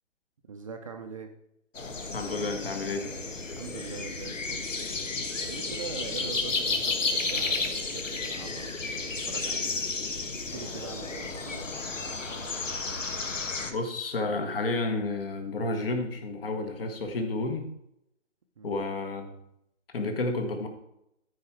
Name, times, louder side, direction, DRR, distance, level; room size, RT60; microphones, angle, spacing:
voice 1, 0.5-1.3 3.6-4.7 5.4-9.8 10.3-12.1 18.6-18.8, right 5 dB, 30° right, 4 dB, 0.6 m, -42 dB
sound 1, 1.8-13.7, left 3 dB, 85° left, 1.4 m, -32 dB
voice 2, 2.1-3.1 13.7-17.7 18.6-19.3 19.9-20.7, left 2 dB, 50° left, 5 dB, 1.8 m, -31 dB
13.5 x 4.8 x 4.4 m, 0.79 s
figure-of-eight pair, 150°, 37 cm